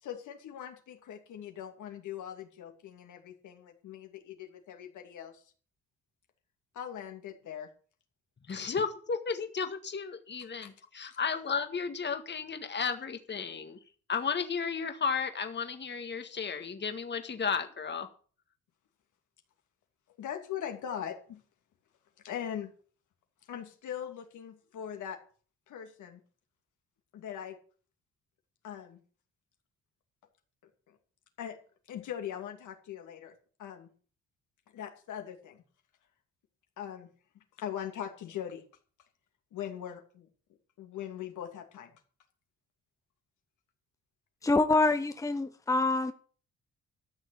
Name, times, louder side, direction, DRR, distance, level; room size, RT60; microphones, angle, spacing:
voice 1, 0.0-5.4 6.7-7.7 10.6-10.7 20.2-21.4 22.2-22.7 23.5-25.2 25.7-26.2 27.1-27.6 28.6-29.0 30.9-31.0 31.4-31.6 31.9-33.3 33.6-33.9 34.7-35.6 36.8-37.1 37.3-38.6 39.5-40.3 40.8-41.9, left 9 dB, 75° left, 4 dB, 2.6 m, -41 dB
voice 2, 8.5-13.8 14.1-18.1, left 5 dB, 35° left, 7 dB, 1.8 m, -33 dB
voice 3, 44.4-46.1, left 3 dB, 10° left, 8 dB, 1.0 m, -26 dB
13.5 x 6.5 x 8.2 m, 0.42 s
cardioid pair, 90°, 30 cm